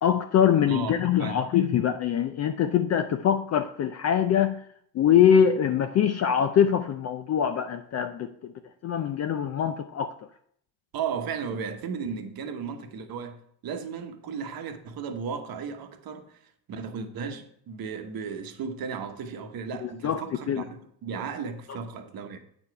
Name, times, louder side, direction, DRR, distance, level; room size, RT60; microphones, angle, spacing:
voice 1, 0.0-4.6 4.9-8.5 8.8-10.1 19.8-20.6, left 8 dB, 35° left, 0.4 m, -23 dB
voice 2, 0.7-1.4 10.9-16.4 16.7-22.4, right 6 dB, 45° right, 1.1 m, -35 dB
8.7 x 4.9 x 4.6 m
cardioid pair, 115°, 49 cm